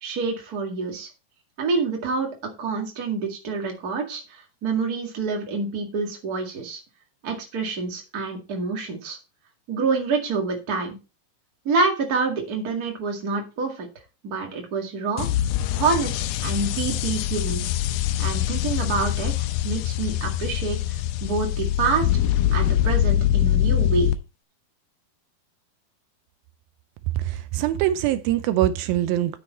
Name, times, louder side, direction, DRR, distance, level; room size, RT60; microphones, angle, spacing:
voice 1, 0.0-1.1 1.6-2.3 2.6-6.8 7.2-9.2 9.7-11.0 11.6-13.9 14.2-15.3 15.7-17.6 18.2-24.1, right 4 dB, 30° right, 1.9 m, -27 dB
sound 1, 15.2-24.1, left 12 dB, 85° left, 2.4 m, -24 dB
voice 2, 27.1-29.4, right 13 dB, 85° right, 2.4 m, -23 dB
9.3 x 7.0 x 4.3 m
omnidirectional pair, 4.2 m